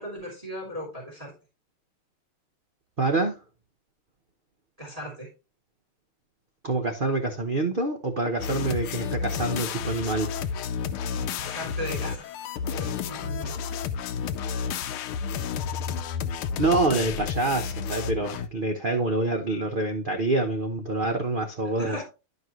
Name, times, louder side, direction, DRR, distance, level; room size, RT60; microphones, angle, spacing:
voice 1, 0.0-1.3 4.8-5.3 11.4-12.3 12.6-13.6 21.8-22.0, equal, 15° right, 3.3 m, -37 dB
voice 2, 3.0-3.4 6.6-10.3 16.6-22.0, right 2 dB, 75° right, 0.4 m, -26 dB
sound 1, 8.4-18.5, left 6 dB, 80° left, 1.5 m, -31 dB
11.0 x 5.4 x 3.0 m
omnidirectional pair, 2.4 m